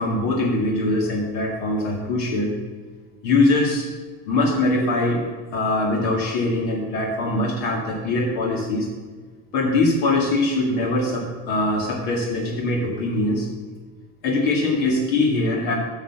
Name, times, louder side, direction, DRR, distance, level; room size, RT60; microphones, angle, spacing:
voice 1, 0.0-2.5 3.2-3.9 4.3-5.2 5.5-8.9 9.5-13.5 14.2-15.7, left 2 dB, 70° left, 0 dB, 2.1 m, -22 dB
9.3 x 6.4 x 6.8 m, 1.4 s
supercardioid pair, 100°, 45 cm